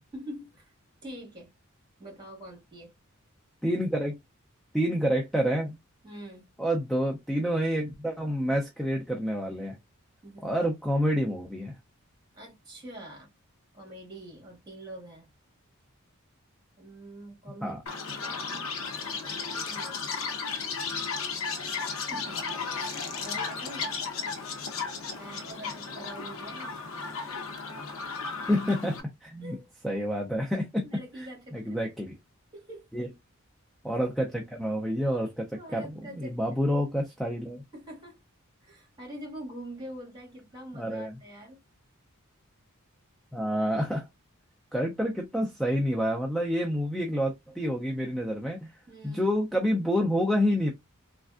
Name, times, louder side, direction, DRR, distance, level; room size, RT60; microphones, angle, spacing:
voice 1, 0.1-0.7 1.0-1.5 2.0-2.9 6.0-6.5 10.2-10.5 12.3-13.3 13.7-15.3 16.8-18.7 19.5-20.1 22.1-22.4 23.2-24.0 25.2-26.8 27.3-27.5 29.4-30.0 30.8-31.8 32.5-32.9 35.5-36.6 37.7-38.2 38.6-41.6 48.9-49.4, right 1 dB, 20° right, 1.7 m, -45 dB
voice 2, 3.6-4.2 4.7-5.8 6.6-9.8 10.4-11.8 17.6-17.8 28.5-29.6 29.8-32.1 32.9-33.1 33.8-37.6 40.7-41.2 43.3-44.1 44.7-48.7 49.0-50.7, equal, ahead, 0.4 m, -28 dB
Chirp tweet, 17.9-29.0, left 5 dB, 70° left, 0.7 m, -34 dB
3.3 x 2.5 x 2.4 m
head